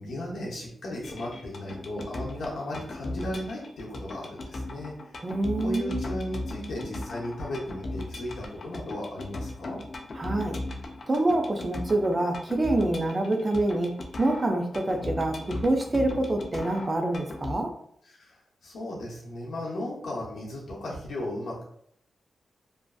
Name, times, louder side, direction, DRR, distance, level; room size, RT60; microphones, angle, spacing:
voice 1, 0.0-5.1 5.5-9.8 14.9-15.0 18.1-21.6, left 1 dB, 85° left, -4 dB, 0.7 m, -36 dB
sound 1, 1.0-17.6, left 2 dB, 50° left, 0.4 m, -38 dB
voice 2, 5.2-6.0 10.2-10.6 11.1-13.9 14.2-17.7, right 2 dB, 30° right, 3 dB, 0.4 m, -26 dB
2.5 x 2.4 x 2.3 m, 0.66 s
wide cardioid pair, 120°, 0 cm